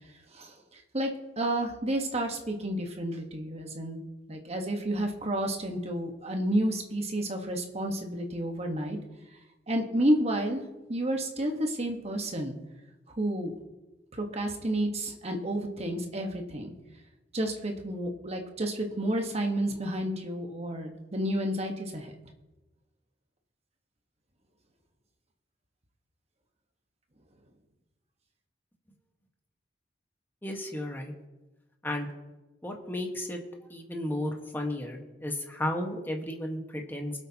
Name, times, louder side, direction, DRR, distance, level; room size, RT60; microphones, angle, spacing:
voice 1, 0.3-1.1 1.4-4.0 4.3-9.0 9.7-10.6 10.9-12.5 13.2-13.5 14.1-16.7 17.3-22.1, right 1 dB, 35° right, 3 dB, 1.3 m, -30 dB
voice 2, 30.4-31.1 31.8-32.1 32.6-33.4 33.7-37.1, left 1 dB, 10° left, 1 dB, 1.4 m, -33 dB
23.5 x 8.2 x 2.9 m, 1.1 s
head